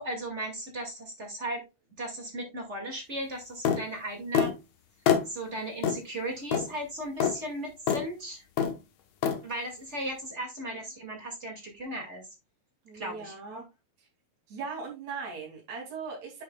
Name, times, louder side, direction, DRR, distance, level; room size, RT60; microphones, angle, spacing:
voice 1, 0.0-1.6 2.0-4.5 5.3-8.5 9.4-12.3 12.9-13.6, right 1 dB, 25° right, 2.0 m, -36 dB
sound 1, 3.7-3.8 4.3-4.5 5.1-5.3 5.8-6.0 6.5-6.7 7.2-7.3 7.9-8.0 8.6-8.8 9.2-9.4, left 8 dB, 70° left, 2.3 m, -25 dB
voice 2, 12.9-13.6 14.5-16.4, right 5 dB, 65° right, 4.0 m, -39 dB
9.6 x 6.3 x 2.3 m
omnidirectional pair, 3.5 m